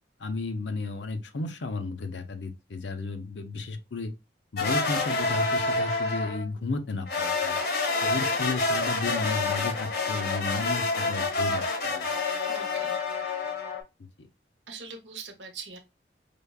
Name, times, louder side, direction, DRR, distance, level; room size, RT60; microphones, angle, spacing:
voice 1, 0.2-4.1 4.5-7.6 8.0-12.1 14.2-14.3, left 3 dB, 85° left, 0.7 m, -33 dB
sound 1, 4.6-6.5 7.1-13.8, left 3 dB, 65° left, 1.0 m, -28 dB
voice 2, 12.4-13.0 14.7-15.8, right 5 dB, 85° right, 0.9 m, -42 dB
5.0 x 2.2 x 2.3 m
head